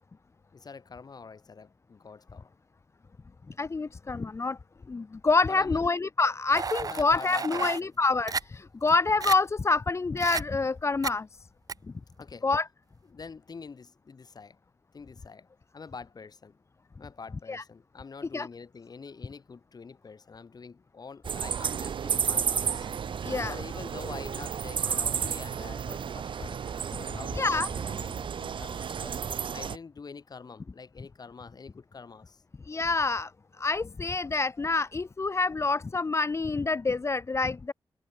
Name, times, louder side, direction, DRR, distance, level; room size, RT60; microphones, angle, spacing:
voice 1, 0.5-2.5 5.5-5.8 6.8-8.0 12.2-12.5 13.1-14.6 14.9-15.5 15.7-16.6 17.0-22.9 23.4-26.6 26.9-29.2 29.5-32.4, left 5 dB, 50° left, 5.3 m, -46 dB
voice 2, 3.6-4.6 4.9-11.3 12.4-12.7 17.5-17.6 18.3-18.5 23.2-23.5 27.3-27.7 32.6-33.3 33.6-37.7, left 3 dB, 35° left, 0.7 m, -27 dB
sound 1, 6.5-7.8 8.3-8.4 8.9-9.0 9.2-9.4 10.2-10.4 11.0-11.1 11.7-11.8, right 5 dB, 45° right, 0.9 m, -32 dB
sound 2, 21.2-29.8, right 7 dB, 80° right, 2.2 m, -32 dB
wide cardioid pair, 100°, 8 cm